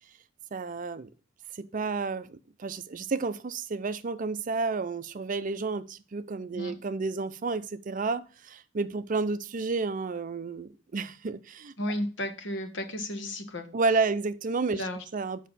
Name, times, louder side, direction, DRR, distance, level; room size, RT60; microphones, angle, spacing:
voice 1, 0.5-1.1 1.6-11.7 13.7-14.8 15.1-15.5, right 4 dB, 45° right, 0.5 m, -31 dB
voice 2, 11.8-13.7 14.7-15.0, left 1 dB, 70° left, 1.3 m, -33 dB
7.1 x 5.4 x 4.0 m
head